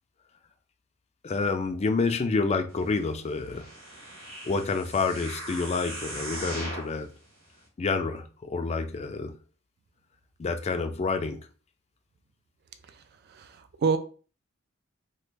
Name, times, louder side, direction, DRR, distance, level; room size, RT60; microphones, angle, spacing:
voice 1, 1.2-3.7 4.4-7.1 7.8-9.3 10.4-11.5, left 4 dB, 30° left, 0.3 m, -28 dB
sound 1, 3.4-7.0 7.6-7.7, right 1 dB, 90° right, 1.1 m, -39 dB
voice 2, 13.3-14.0, right 5 dB, 50° right, 0.3 m, -27 dB
3.0 x 2.4 x 3.3 m
head